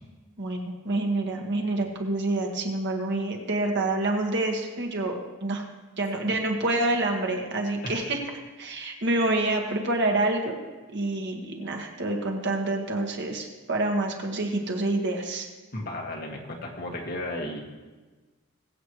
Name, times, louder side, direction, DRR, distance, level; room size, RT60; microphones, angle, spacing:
voice 1, 0.4-5.6 6.0-8.2 8.6-10.6 10.9-15.5, right 2 dB, 55° right, 2 dB, 1.7 m, -27 dB
voice 2, 15.7-17.6, left 1 dB, 45° left, -1 dB, 1.9 m, -34 dB
21.0 x 8.3 x 3.2 m, 1.3 s
head